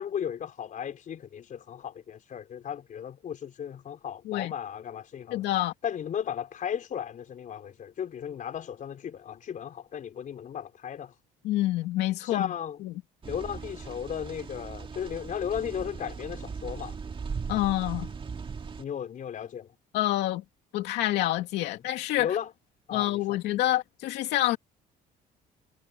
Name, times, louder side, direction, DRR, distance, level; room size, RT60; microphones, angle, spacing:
voice 1, 0.0-5.5 5.8-11.1 12.2-12.8 13.3-17.0 18.8-19.7 21.7-21.8 22.2-22.5 22.9-23.4, left 9 dB, 50° left, 4.7 m, -35 dB
voice 2, 5.3-5.7 11.4-12.5 12.8-12.9 17.5-18.1 19.9-20.4 20.7-22.4 22.9-24.6, left 15 dB, 85° left, 2.7 m, -27 dB
sound 1, 13.2-18.8, right 5 dB, 30° right, 2.0 m, -38 dB
cardioid pair, 110°, 17 cm